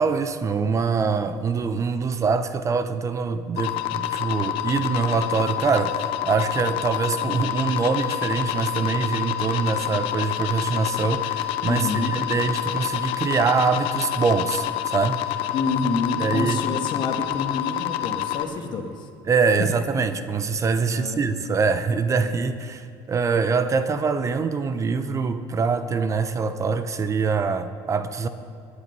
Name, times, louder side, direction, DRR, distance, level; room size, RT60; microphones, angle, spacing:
voice 1, 0.0-15.2 16.2-16.6 19.3-28.3, right 5 dB, 35° right, 0.8 m, -24 dB
sound 1, 3.6-18.4, left 13 dB, 70° left, 0.9 m, -28 dB
voice 2, 11.7-12.2 15.5-19.1 19.6-19.7 20.8-21.3 22.2-22.5, left 4 dB, 55° left, 1.6 m, -28 dB
19.0 x 10.0 x 5.5 m
supercardioid pair, 90°, 9 cm